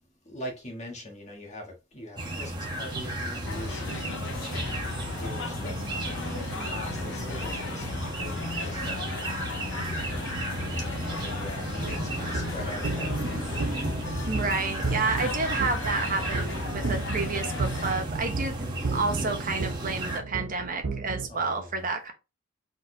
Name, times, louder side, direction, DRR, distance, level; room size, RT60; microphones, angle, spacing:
voice 1, 0.3-4.6 5.0-10.4 10.9-13.8 14.8-14.9 21.3-21.9, left 1 dB, 30° left, 1.4 m, -43 dB
sound 1, 2.2-20.2, right 1 dB, 20° right, 1.0 m, -34 dB
sound 2, 3.4-17.9, left 4 dB, 60° left, 0.6 m, -37 dB
sound 3, 11.8-21.3, right 3 dB, 65° right, 0.7 m, -34 dB
voice 2, 14.3-18.5 18.9-22.1, right 3 dB, 40° right, 1.0 m, -30 dB
4.2 x 4.0 x 2.7 m
head